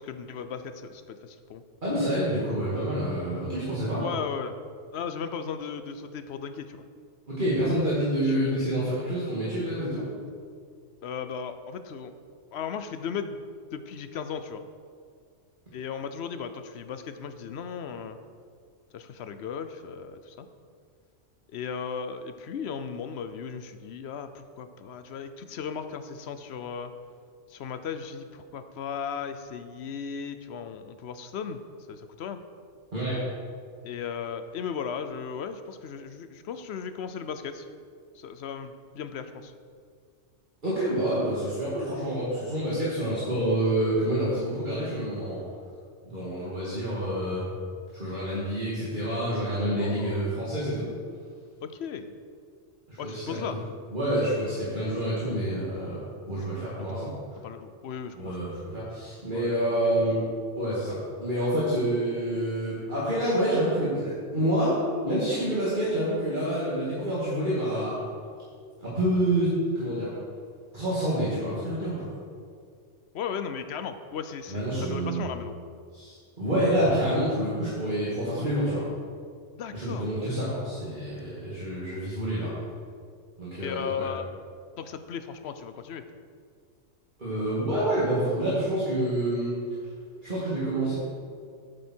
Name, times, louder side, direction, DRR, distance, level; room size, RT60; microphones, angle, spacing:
voice 1, 0.0-1.6 4.0-4.6 4.9-6.9 8.2-8.7 11.0-12.1 12.5-13.4 13.7-14.6 15.7-18.2 18.9-20.5 21.5-26.9 27.5-31.6 31.9-32.4 33.8-37.7 38.1-39.5 49.8-50.4 51.6-52.1 53.0-53.6 56.8-57.2 57.4-58.5 59.3-59.9 73.1-75.5 79.5-80.1 83.6-84.3 84.8-86.0, left 6 dB, 65° left, 10 dB, 0.8 m, -36 dB
voice 2, 1.8-4.0 7.3-10.1 32.9-33.2 40.6-45.4 46.1-47.4 47.9-50.9 52.9-53.4 53.9-56.0 56.3-57.1 58.2-60.3 60.6-64.8 65.0-68.0 68.8-70.1 70.7-72.1 74.5-75.3 75.9-78.8 79.7-82.5 83.4-84.1 87.2-89.5 90.2-90.9, right 1 dB, 40° right, -10 dB, 2.3 m, -27 dB
9.8 x 7.8 x 4.4 m, 2.2 s
omnidirectional pair, 1.3 m